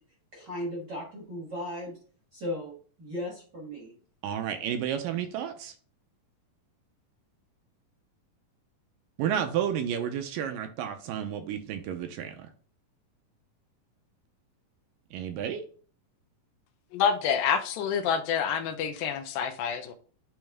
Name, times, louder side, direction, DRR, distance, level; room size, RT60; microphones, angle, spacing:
voice 1, 0.3-2.0 2.3-3.9, left 1 dB, 50° right, 1.3 m, -36 dB
voice 2, 4.2-5.7 9.2-12.4 15.1-15.7, right 9 dB, 80° right, 2.3 m, -31 dB
voice 3, 16.9-19.9, left 7 dB, 85° left, 2.5 m, -27 dB
8.9 x 3.1 x 3.5 m
omnidirectional pair, 4.1 m